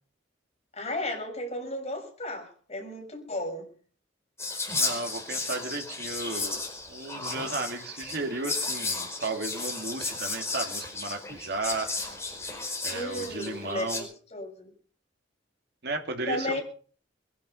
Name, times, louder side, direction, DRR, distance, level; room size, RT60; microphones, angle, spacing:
voice 1, 0.8-3.7 12.9-14.7 16.3-16.6, left 1 dB, 35° left, 6.6 m, -34 dB
Whispering, 4.4-14.0, left 3 dB, 15° left, 5.1 m, -34 dB
voice 2, 4.7-11.9 12.8-14.1 15.8-16.6, right 3 dB, 60° right, 2.6 m, -34 dB
22.5 x 10.5 x 5.5 m
head